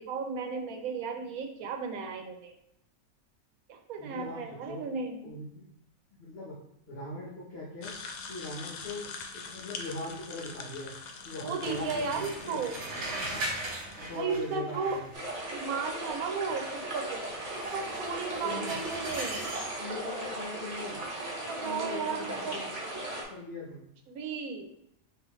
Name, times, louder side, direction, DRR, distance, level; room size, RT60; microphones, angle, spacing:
voice 1, 0.0-2.5 3.7-5.3 11.4-12.7 14.1-15.0 15.5-17.2 17.7-19.5 21.5-22.6 24.1-24.7, right 5 dB, 80° right, 4 dB, 1.1 m, -34 dB
voice 2, 4.0-4.8 5.2-5.7 6.2-6.5 6.9-7.9 8.3-10.9 11.2-12.6 12.9-13.4 14.0-15.1 18.1-18.2 18.4-18.7 19.7-21.0 21.6-22.6 23.3-23.8, left 2 dB, 50° left, -5 dB, 1.1 m, -40 dB
sound 1, 7.8-14.0, left 5 dB, 75° left, 1.1 m, -44 dB
sound 2, 11.6-15.4 17.6-19.8, right 1 dB, 55° right, 1.1 m, -39 dB
sound 3, 15.1-23.2, right 1 dB, 30° right, 1.0 m, -37 dB
5.4 x 2.8 x 3.1 m, 0.77 s
omnidirectional pair, 1.5 m